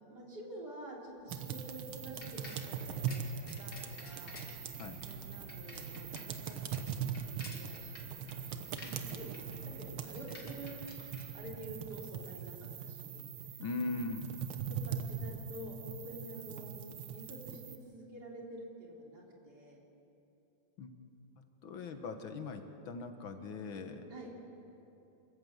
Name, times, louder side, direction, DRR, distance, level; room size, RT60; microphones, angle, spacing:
voice 1, 0.1-4.4 5.1-12.5 12.8-13.3 14.7-19.8 22.0-22.1 24.1-24.3, right 1 dB, 55° right, -3 dB, 4.1 m, -49 dB
Bicycle, 1.2-12.1, left 2 dB, 60° left, 3.0 m, -53 dB
sound 1, 1.3-17.8, right 7 dB, 85° right, 2.0 m, -41 dB
voice 2, 13.6-14.3 20.8-20.9 21.6-24.0, left 3 dB, 80° left, 6 dB, 2.1 m, -40 dB
27.0 x 14.5 x 8.0 m, 3.0 s
omnidirectional pair, 2.2 m